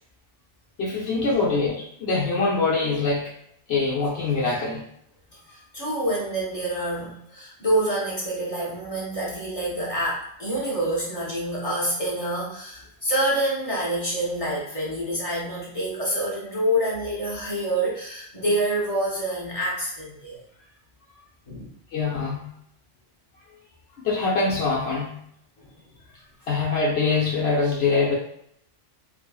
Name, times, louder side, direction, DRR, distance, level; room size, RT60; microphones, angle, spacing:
voice 1, 0.8-3.2 3.7-4.8 21.9-22.5 24.0-25.2 26.5-28.1, left 3 dB, 65° left, -4 dB, 0.9 m, -24 dB
voice 2, 5.5-20.4 21.5-21.7 25.6-25.7, right 1 dB, 40° left, -5 dB, 0.6 m, -27 dB
2.6 x 2.5 x 2.3 m, 0.72 s
omnidirectional pair, 1.2 m